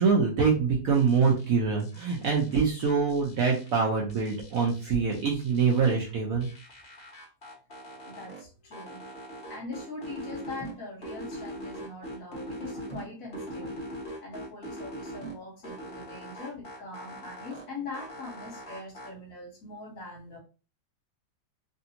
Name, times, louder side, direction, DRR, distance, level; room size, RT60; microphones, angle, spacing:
voice 1, 0.0-6.5, right 5 dB, 60° right, -2 dB, 1.0 m, -25 dB
sound 1, 0.9-1.5 1.8-3.8 4.1-6.1 6.4-8.4 8.7-10.7 11.0-13.0 13.3-15.3 15.6-17.6 17.9-19.1, equal, 35° left, 1.2 m, -41 dB
voice 2, 8.0-9.0 9.4-13.8 14.2-20.4, left 3 dB, 50° left, -2 dB, 1.5 m, -42 dB
3.3 x 2.6 x 2.8 m, 0.34 s
omnidirectional pair, 2.0 m